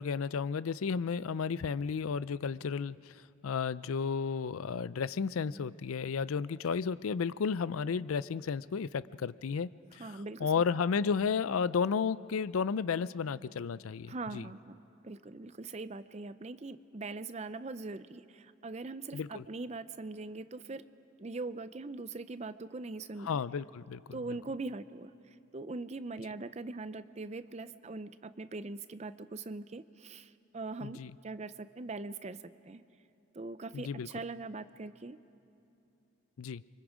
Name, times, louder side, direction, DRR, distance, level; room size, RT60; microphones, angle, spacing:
voice 1, 0.0-3.0 3.4-9.7 10.4-14.4 19.1-19.4 23.3-24.0 30.8-31.1 33.7-34.1 36.4-36.6, left 6 dB, 90° left, 17 dB, 0.4 m, -32 dB
voice 2, 10.0-10.7 14.1-14.8 15.0-20.9 21.2-23.3 24.1-32.8 33.3-35.2, right 3 dB, 30° right, 13 dB, 0.5 m, -42 dB
30.0 x 24.0 x 5.1 m, 2.9 s
head